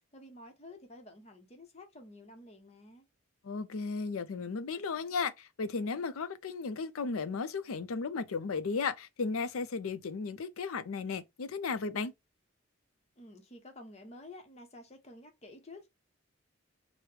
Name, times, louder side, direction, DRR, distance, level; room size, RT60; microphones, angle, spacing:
voice 1, 0.0-3.1 13.2-15.9, left 2 dB, 30° left, 0.7 m, -51 dB
voice 2, 3.4-12.1, left 4 dB, 85° left, 0.5 m, -35 dB
4.7 x 2.1 x 3.2 m
head